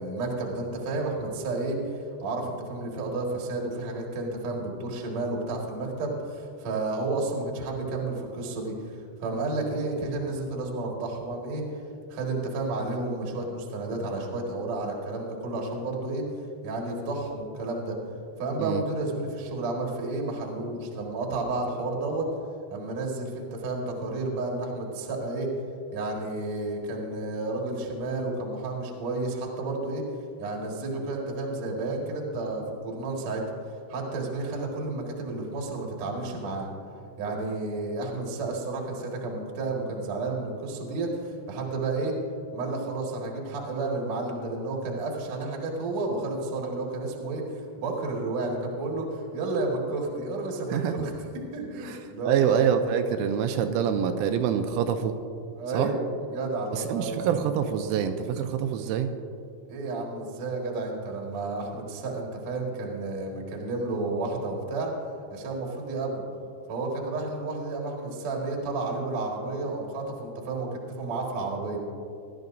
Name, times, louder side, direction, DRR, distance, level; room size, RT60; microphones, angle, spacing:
voice 1, 0.0-11.6 12.1-16.3 16.6-18.0 18.4-22.3 22.7-25.5 25.9-30.0 30.4-33.4 33.9-36.7 37.2-42.2 42.5-51.1 51.5-52.5 55.6-56.0 56.3-57.3 59.7-64.9 65.3-66.2 66.7-71.8, right 2 dB, 60° right, -1 dB, 1.8 m, -31 dB
voice 2, 52.2-55.2 55.7-55.9 56.7-59.1, right 8 dB, 85° right, 7 dB, 2.9 m, -26 dB
19.5 x 11.5 x 2.6 m, 2.5 s
omnidirectional pair, 5.9 m